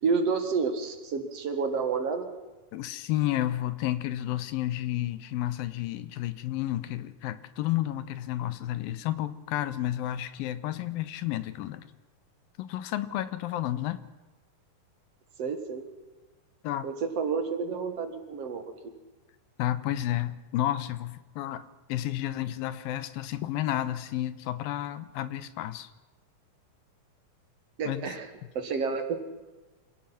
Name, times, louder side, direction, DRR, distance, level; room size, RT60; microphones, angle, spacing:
voice 1, 0.0-2.3 15.4-15.8 16.8-18.6 27.8-28.3 28.5-29.2, right 5 dB, 50° right, 6 dB, 2.5 m, -29 dB
voice 2, 2.7-11.9 12.6-14.0 16.6-16.9 19.6-21.6 21.9-25.9 27.9-28.1, left 13 dB, 85° left, 13 dB, 2.7 m, -31 dB
27.5 x 16.5 x 5.9 m, 1.2 s
omnidirectional pair, 4.1 m